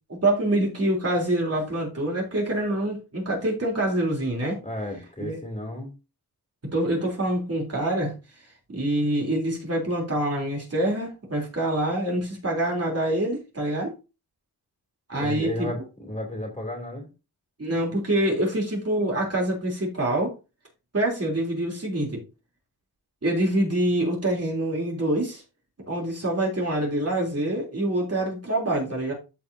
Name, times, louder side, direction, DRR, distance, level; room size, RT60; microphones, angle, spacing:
voice 1, 0.1-4.6 5.2-5.4 6.6-8.2 8.7-13.9 15.1-15.7 17.6-20.3 20.9-22.2 23.2-25.4 25.9-29.1, right 1 dB, 40° right, -2 dB, 3.2 m, -25 dB
voice 2, 4.6-5.9 15.2-17.1, left 1 dB, 20° left, 0 dB, 3.0 m, -33 dB
14.0 x 4.7 x 2.7 m, 0.30 s
wide cardioid pair, 120°, 38 cm